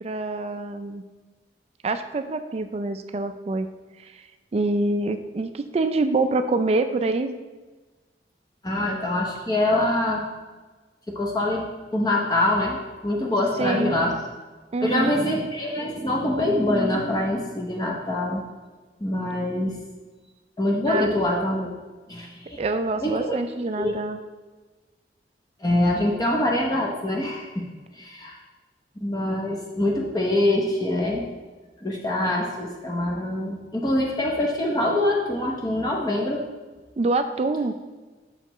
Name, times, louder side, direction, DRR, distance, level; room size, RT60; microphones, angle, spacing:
voice 1, 0.0-1.0 1.8-3.7 4.0-4.3 4.5-7.3 13.6-14.0 14.7-15.1 20.9-21.1 22.6-24.2 37.0-37.7, right 2 dB, 35° right, 9 dB, 0.3 m, -25 dB
voice 2, 8.6-10.2 11.1-14.1 14.8-18.4 19.0-19.7 20.6-21.7 22.1-22.6 23.0-23.3 23.8-23.9 25.6-27.6 27.9-28.4 29.0-31.3 31.8-36.4, left 1 dB, 20° left, -1 dB, 0.7 m, -24 dB
6.5 x 6.5 x 3.0 m, 1.3 s
head